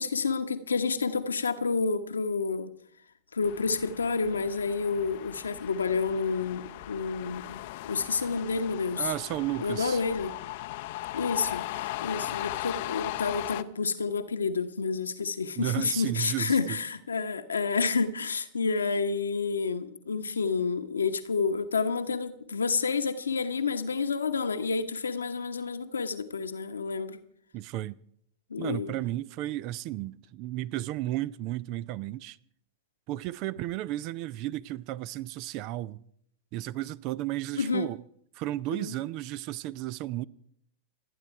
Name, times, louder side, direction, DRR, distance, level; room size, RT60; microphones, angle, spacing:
voice 1, 0.0-2.7 3.3-7.6 7.8-9.1 9.6-10.3 11.1-27.2 28.5-29.0 37.6-37.9 38.7-38.9, left 4 dB, 80° left, 1.1 m, -29 dB
sound 1, 3.4-13.6, left 17 dB, 55° left, 0.6 m, -38 dB
voice 2, 9.0-10.0 15.6-16.6 27.5-28.0 28.6-32.4 33.1-36.0 36.5-38.0 38.3-40.2, right 15 dB, 45° right, 0.5 m, -33 dB
28.5 x 9.6 x 4.6 m
figure-of-eight pair, 95°, 0 cm